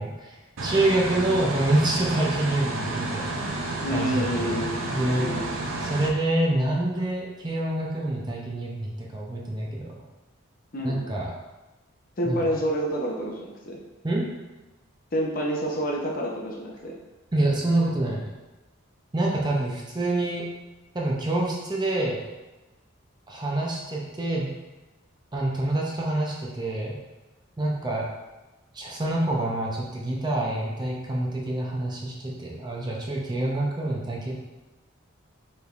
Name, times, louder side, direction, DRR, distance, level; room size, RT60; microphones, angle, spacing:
voice 1, 0.0-3.4 3.9-5.3 5.8-9.9 10.8-11.3 12.3-12.5 14.0-14.2 17.3-18.3 19.1-20.4 20.9-22.2 23.3-24.5 25.3-26.9 27.6-28.0 28.7-34.3, right 1 dB, 20° right, -3 dB, 0.5 m, -27 dB
sound 1, 0.6-6.1, right 2 dB, 75° right, 0.5 m, -31 dB
voice 2, 3.8-5.5 10.7-11.0 12.2-13.8 15.1-16.9, equal, 45° left, -2 dB, 0.6 m, -28 dB
4.9 x 3.3 x 2.4 m, 1.1 s
head